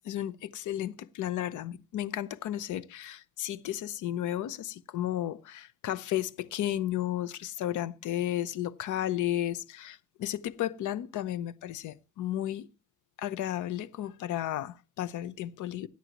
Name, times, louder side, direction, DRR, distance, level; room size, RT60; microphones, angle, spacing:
voice 1, 0.1-12.7 13.2-15.9, left 12 dB, 80° left, 0.8 m, -33 dB
17.0 x 9.9 x 3.0 m
cardioid pair, 90°, 30 cm